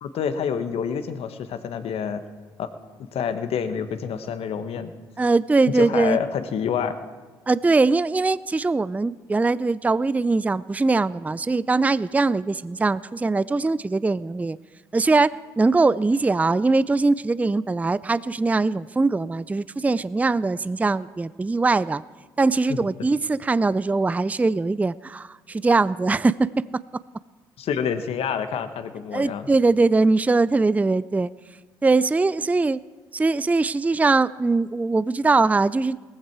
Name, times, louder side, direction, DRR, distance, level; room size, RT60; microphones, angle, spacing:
voice 1, 0.0-2.2 2.6-2.7 3.1-4.9 5.7-7.0 22.7-22.8 27.6-29.5, left 7 dB, 60° left, 10 dB, 1.3 m, -27 dB
voice 2, 5.2-6.2 7.5-14.6 14.9-22.0 22.4-26.8 29.1-31.3 31.8-32.8 33.1-36.0, right 3 dB, 15° right, 18 dB, 0.4 m, -21 dB
19.0 x 15.0 x 4.7 m, 1.3 s
hypercardioid pair, 50°, 11 cm